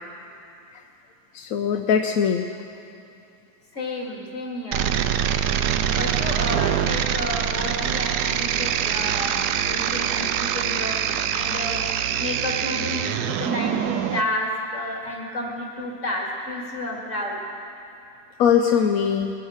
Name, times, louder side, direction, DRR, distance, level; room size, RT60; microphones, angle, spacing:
voice 1, 1.3-2.5 18.4-19.3, left 7 dB, 65° left, 5 dB, 0.9 m, -21 dB
voice 2, 3.7-4.9 5.9-11.0 11.3-11.9 12.2-17.4, left 1 dB, 45° left, -2 dB, 2.7 m, -31 dB
sound 1, 4.7-14.2, right 9 dB, 75° right, 1.1 m, -24 dB
21.5 x 8.9 x 6.4 m, 2.8 s
omnidirectional pair, 1.8 m